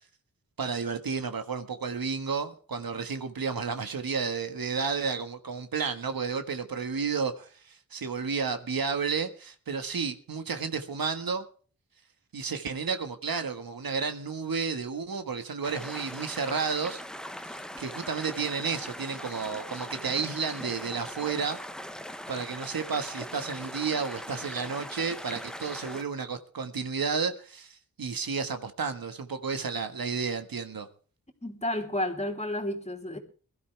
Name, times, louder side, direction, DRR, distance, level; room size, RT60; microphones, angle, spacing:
voice 1, 0.6-11.4 12.3-17.0 17.4-21.6 22.3-30.9, right 5 dB, 80° right, 1.6 m, -32 dB
sound 1, 15.6-26.0, equal, ahead, 1.1 m, -40 dB
voice 2, 31.4-33.2, left 1 dB, 20° left, 2.9 m, -31 dB
22.0 x 12.5 x 3.4 m
wide cardioid pair, 70°, 35 cm